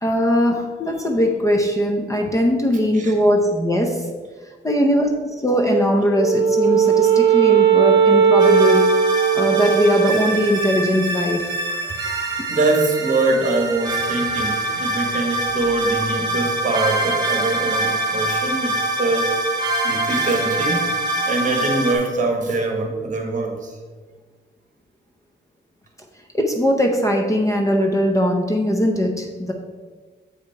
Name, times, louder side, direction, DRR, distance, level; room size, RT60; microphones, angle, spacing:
voice 1, 0.0-4.1 4.6-8.9 9.3-11.5 26.3-29.5, equal, 15° left, 2 dB, 0.6 m, -20 dB
Wind instrument woodwind instrument, 6.1-10.6, right 7 dB, 65° right, 0.7 m, -17 dB
sound 1, 8.4-21.9, right 2 dB, 20° right, 1.2 m, -24 dB
voice 2, 11.7-21.0 21.3-23.8, right 2 dB, 40° right, 2 dB, 1.2 m, -23 dB
7.4 x 5.0 x 4.6 m, 1.4 s
wide cardioid pair, 175°, 19 cm